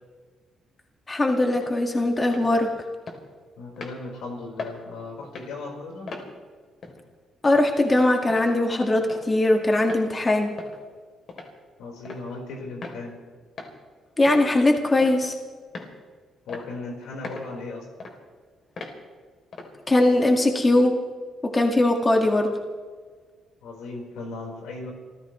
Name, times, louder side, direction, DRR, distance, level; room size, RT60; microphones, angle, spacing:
voice 1, 1.1-2.7 7.4-10.6 14.2-15.3 19.9-21.0 21.4-22.5, left 2 dB, 25° left, 3 dB, 1.9 m, -20 dB
sound 1, 1.5-1.7 2.2-2.5 3.1-3.2 3.8-4.0 4.6-4.8 5.2-5.5 6.1-6.3 6.8-7.0 7.6-7.7 8.3-8.5 9.1-9.3 9.8-10.0 10.6-10.8 11.3-11.5 12.0-12.2 12.8-13.0 13.6-13.7 14.3-14.5 15.0-15.3 15.7-15.9 16.5-16.7 17.2-17.5 18.0-18.1 18.8-19.0 19.5-19.7, left 3 dB, 50° left, 3.2 m, -38 dB
voice 2, 3.6-6.2 11.8-13.1 16.5-17.9 23.6-24.9, left 3 dB, 85° left, 0 dB, 4.5 m, -37 dB
28.5 x 15.0 x 3.2 m, 1.5 s
cardioid pair, 90°, 0 cm